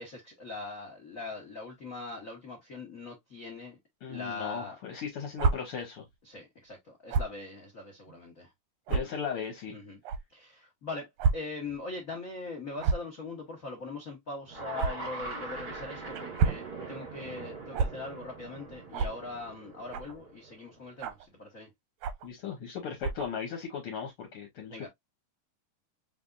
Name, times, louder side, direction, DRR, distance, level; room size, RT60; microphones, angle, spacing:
voice 1, 0.0-3.8 4.1-4.8 6.2-8.5 9.7-10.0 10.3-21.7 24.7-24.9, left 3 dB, 80° left, 0.7 m, -41 dB
voice 2, 4.0-6.1 8.9-9.8 22.2-24.9, left 7 dB, 60° left, 1.7 m, -37 dB
sound 1, 5.3-5.5 7.1-7.3 8.1-8.2 8.9-9.0 10.0-10.2 11.2-11.3 11.7-11.8 12.8-13.1 14.8-14.9 16.1-16.6 17.7-17.9 18.9-19.1 19.9-20.2 21.0-21.3 22.0-22.3 23.0-23.3, right 5 dB, 75° right, 1.6 m, -27 dB
sound 2, 14.5-20.7, right 3 dB, 30° right, 1.2 m, -42 dB
5.5 x 3.4 x 2.4 m
omnidirectional pair, 3.5 m